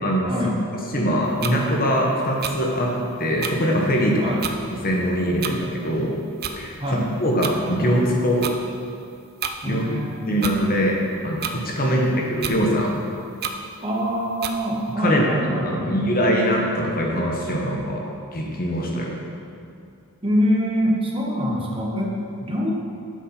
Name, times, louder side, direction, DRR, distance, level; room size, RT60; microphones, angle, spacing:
voice 1, 0.0-0.3 0.7-2.9 3.2-4.4 4.7-6.1 6.5-8.5 9.7-9.9 10.3-11.0 11.2-12.9 15.0-18.1 18.3-19.2, equal, 40° left, -1 dB, 1.2 m, -22 dB
small clock in room, 1.4-1.5 2.4-2.5 3.4-3.5 4.4-4.6 5.4-5.6 6.4-6.6 7.4-7.5 8.4-8.6 9.4-9.5 10.4-10.6 11.4-11.6 12.4-12.6 13.4-13.6 14.4-14.5, right 7 dB, 45° right, 0.5 m, -28 dB
voice 2, 6.8-7.1 9.6-10.4 11.8-12.1 13.8-16.0 20.2-22.7, equal, 25° right, -2 dB, 1.1 m, -24 dB
8.6 x 5.4 x 5.8 m, 2.5 s
head